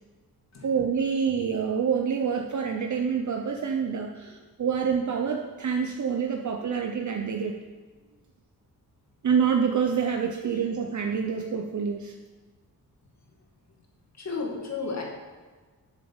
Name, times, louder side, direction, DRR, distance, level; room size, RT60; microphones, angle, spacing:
voice 1, 0.6-7.5 9.2-12.1, right 6 dB, 50° right, 3 dB, 0.8 m, -27 dB
voice 2, 14.2-15.0, left 4 dB, 45° left, -1 dB, 2.3 m, -32 dB
8.3 x 7.3 x 7.2 m, 1.4 s
wide cardioid pair, 130°, 36 cm